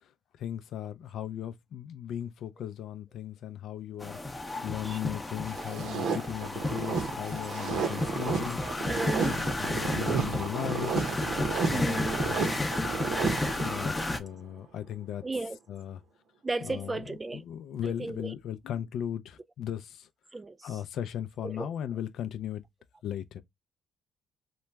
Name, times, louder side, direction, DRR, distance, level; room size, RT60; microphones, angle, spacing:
voice 1, 0.4-4.2 4.6-8.6 9.3-10.9 11.5-12.5 13.6-15.2 15.7-16.0 16.7-17.0 17.5-20.1 20.6-22.6 23.0-23.4, left 10 dB, 75° left, 0.4 m, -37 dB
sound 1, 4.0-14.2, left 2 dB, 20° left, 0.6 m, -33 dB
sound 2, 5.5-14.1, right 5 dB, 75° right, 0.7 m, -33 dB
voice 2, 8.6-9.4 11.7-12.2 15.2-15.6 16.4-17.4 17.8-18.3 20.3-20.8 21.4-21.7, right 3 dB, 20° right, 0.3 m, -35 dB
2.9 x 2.2 x 3.3 m
cardioid pair, 90°, 0 cm